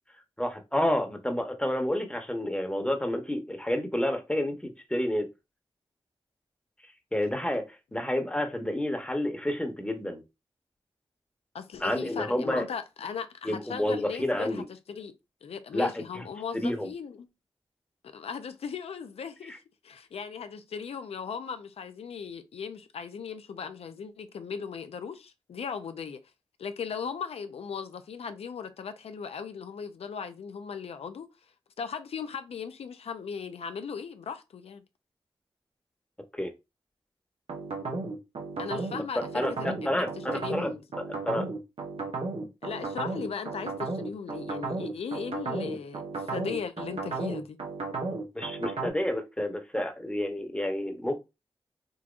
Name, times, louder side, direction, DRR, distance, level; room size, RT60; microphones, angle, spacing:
voice 1, 0.4-5.3 7.1-10.2 11.8-12.7 13.4-14.7 15.7-16.2 16.5-16.9 19.5-19.6 36.3-36.5 39.3-40.7 41.0-41.5 48.3-51.2, left 1 dB, 10° left, 0.9 m, -30 dB
voice 2, 11.5-15.1 15.4-17.3 18.1-19.5 19.8-26.2 26.6-31.3 31.8-34.8 38.6-40.1 40.3-40.8 42.6-47.6, left 6 dB, 85° left, 0.4 m, -38 dB
sound 1, 37.5-48.9, right 3 dB, 85° right, 1.0 m, -34 dB
3.7 x 2.8 x 2.4 m
cardioid pair, 50°, 10 cm